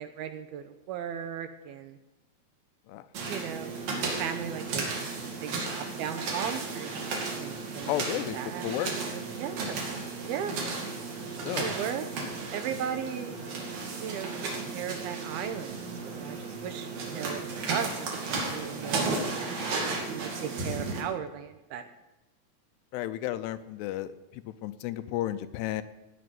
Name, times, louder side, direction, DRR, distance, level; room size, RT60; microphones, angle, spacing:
voice 1, 0.0-2.0 3.3-4.9 5.4-7.0 7.3-8.7 8.9-9.8 10.2-10.6 11.6-12.1 12.5-13.4 14.0-17.4 17.7-19.6 19.9-21.8, right 9 dB, 80° right, 9 dB, 2.4 m, -37 dB
sound 1, 3.1-21.0, right 3 dB, 60° right, 3.9 m, -34 dB
voice 2, 7.9-8.4 8.6-8.9 11.4-11.7 22.9-25.8, left 13 dB, 80° left, 12 dB, 2.7 m, -33 dB
17.5 x 6.0 x 9.5 m, 1.0 s
omnidirectional pair, 4.9 m